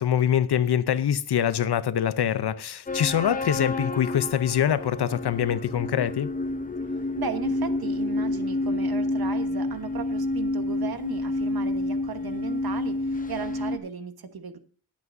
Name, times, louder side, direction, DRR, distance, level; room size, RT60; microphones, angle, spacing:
voice 1, 0.0-6.3, left 9 dB, 80° left, 0.7 m, -24 dB
sound 1, 2.9-13.8, left 2 dB, 20° left, 0.7 m, -29 dB
voice 2, 7.2-14.6, right 6 dB, 65° right, 1.3 m, -36 dB
20.0 x 8.5 x 2.6 m
wide cardioid pair, 120°, 39 cm